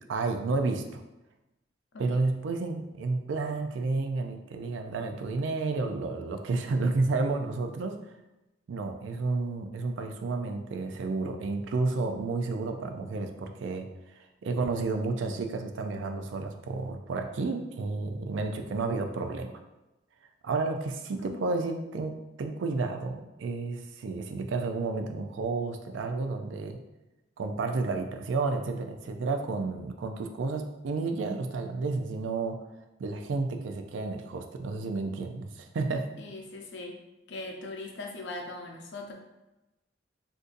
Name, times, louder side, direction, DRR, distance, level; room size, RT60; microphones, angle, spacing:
voice 1, 0.1-1.0 2.0-8.0 8.7-13.9 14.2-19.5 20.4-26.8 27.4-32.6 33.0-36.1, right 3 dB, 85° right, 5 dB, 0.4 m, -31 dB
voice 2, 36.2-37.0 37.3-39.1, left 2 dB, 75° left, 2 dB, 0.6 m, -40 dB
3.8 x 2.6 x 2.5 m, 0.99 s
head